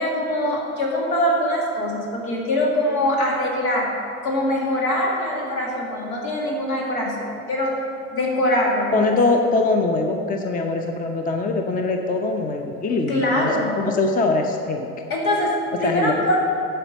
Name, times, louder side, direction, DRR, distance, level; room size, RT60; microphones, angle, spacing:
voice 1, 0.0-3.9 4.2-7.2 7.5-7.8 8.1-9.2 13.1-13.7 15.1-15.5 15.8-16.4, left 1 dB, 70° left, -2 dB, 2.2 m, -23 dB
voice 2, 8.9-14.9 15.8-16.3, left 3 dB, 20° left, 4 dB, 0.7 m, -22 dB
9.9 x 5.5 x 6.3 m, 2.6 s
figure-of-eight pair, 70°, 43 cm